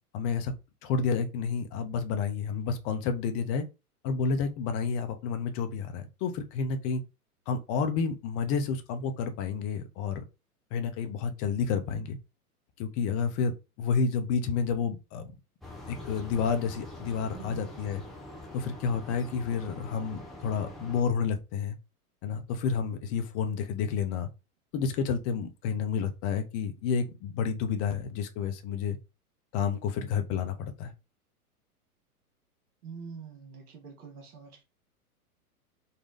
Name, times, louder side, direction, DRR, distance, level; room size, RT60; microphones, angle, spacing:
voice 1, 0.1-0.5 0.8-3.6 4.0-7.0 7.5-10.2 10.7-12.2 12.8-15.3 15.9-18.0 18.5-21.8 22.2-24.3 24.7-29.0 29.5-30.9, left 6 dB, 30° left, 0.8 m, -30 dB
sound 1, 15.6-21.0, left 1 dB, ahead, 0.4 m, -44 dB
voice 2, 17.3-17.7 32.8-34.6, right 6 dB, 70° right, 1.4 m, -45 dB
4.1 x 2.3 x 3.9 m
figure-of-eight pair, 105°, 46 cm